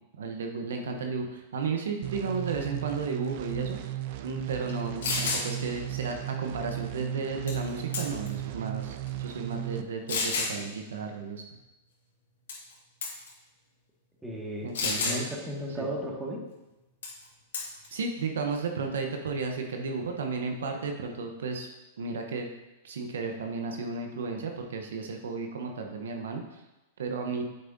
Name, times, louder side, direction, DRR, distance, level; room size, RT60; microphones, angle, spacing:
voice 1, 0.2-11.6 14.6-15.3 15.8-15.9 17.9-21.7 22.0-22.5 22.8-26.6 27.0-27.4, right 4 dB, 80° right, 3 dB, 0.9 m, -33 dB
sound 1, 2.0-9.8, right 14 dB, 55° right, 0.5 m, -36 dB
sound 2, 4.7-4.8 5.0-5.4 7.5-7.7 7.9-8.4 9.1-9.2 10.1-10.5 12.5-12.7 13.0-13.3 14.7-15.2 17.0-17.2 17.5-17.9, left 4 dB, 80° left, 2.5 m, -29 dB
voice 2, 14.2-16.4, equal, 10° right, -3 dB, 1.9 m, -35 dB
8.1 x 6.6 x 2.7 m, 1.0 s
hypercardioid pair, 110°, 0 cm